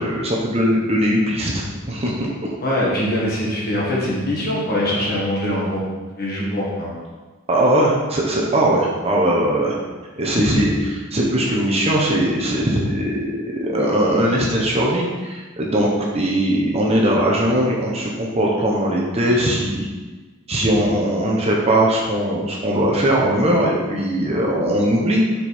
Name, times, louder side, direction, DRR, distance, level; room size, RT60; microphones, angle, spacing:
voice 1, 0.0-2.3 7.5-9.8 10.2-19.9 20.5-25.2, right 1 dB, 30° right, -3 dB, 0.9 m, -20 dB
voice 2, 2.6-5.8 6.2-7.1, left 1 dB, 45° left, -5 dB, 1.7 m, -23 dB
5.1 x 4.5 x 4.3 m, 1.3 s
head